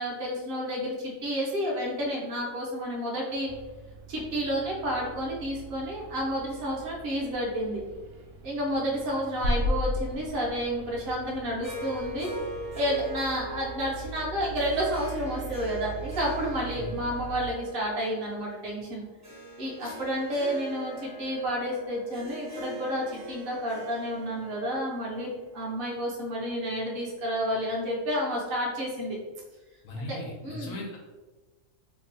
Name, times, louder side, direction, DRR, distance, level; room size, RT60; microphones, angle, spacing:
voice 1, 0.0-3.5 4.1-7.8 8.4-12.3 12.7-19.0 19.6-29.2 30.0-30.7, equal, 45° right, -4 dB, 1.0 m, -30 dB
sound 1, 3.4-17.5, equal, 90° right, 1.1 m, -37 dB
Harp, 11.6-26.0, equal, 15° right, 0.8 m, -42 dB
voice 2, 29.8-31.0, left 1 dB, 80° left, -2 dB, 1.2 m, -38 dB
3.0 x 2.3 x 3.8 m, 1.2 s
omnidirectional pair, 1.4 m